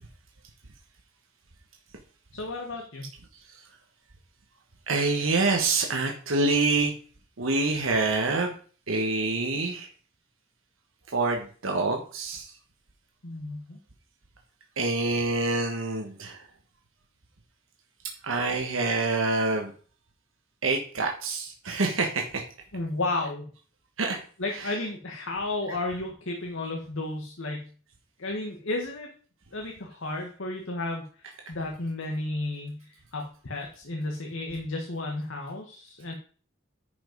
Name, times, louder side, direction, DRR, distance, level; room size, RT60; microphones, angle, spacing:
voice 1, 2.3-3.1 13.2-13.8 22.7-23.4 24.4-27.7 28.2-29.1 29.5-36.1, left 2 dB, 75° left, 1 dB, 1.5 m, -33 dB
voice 2, 4.9-6.9 7.4-8.5 8.9-9.9 11.1-12.5 14.8-16.4 18.2-19.7 20.6-22.4 24.0-24.2, right 3 dB, 90° right, 2 dB, 1.3 m, -26 dB
10.0 x 5.4 x 5.3 m, 0.42 s
head